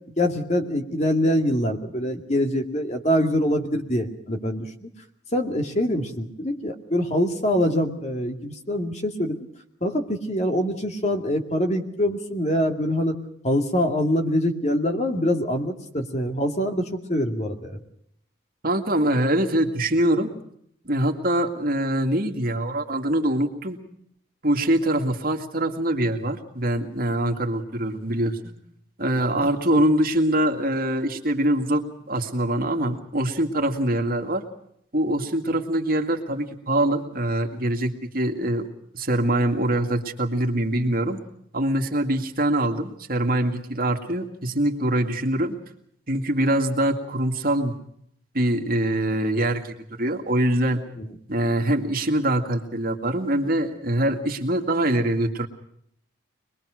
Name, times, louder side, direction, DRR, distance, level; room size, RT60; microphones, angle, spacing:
voice 1, 0.2-4.9 5.3-9.4 9.8-13.1 13.4-17.8 29.3-29.8 35.5-35.6 51.0-51.1, equal, 35° left, 4 dB, 2.3 m, -24 dB
voice 2, 18.6-20.3 20.8-23.8 24.4-28.5 29.0-34.4 34.9-38.7 38.9-41.2 41.5-45.6 46.1-47.7 48.3-50.8 51.3-55.5, right 1 dB, 50° right, 3 dB, 2.2 m, -24 dB
24.0 x 21.5 x 6.4 m, 0.71 s
head